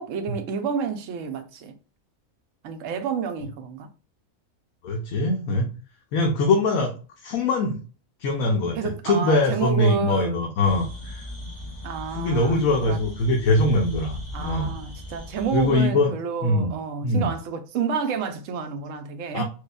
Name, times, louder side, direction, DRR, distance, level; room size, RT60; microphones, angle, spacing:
voice 1, 0.0-1.7 2.6-3.9 8.7-10.4 11.8-13.0 14.3-19.4, right 6 dB, 65° right, 0.9 m, -29 dB
voice 2, 4.8-5.7 6.1-6.9 7.2-7.8 8.2-8.8 9.0-11.2 12.2-14.7 15.5-16.1 16.4-16.7 17.0-17.3 19.3-19.4, left 2 dB, 75° left, 1.1 m, -22 dB
sound 1, 10.6-15.8, left 1 dB, 35° left, 0.8 m, -38 dB
4.6 x 2.4 x 2.3 m
omnidirectional pair, 1.5 m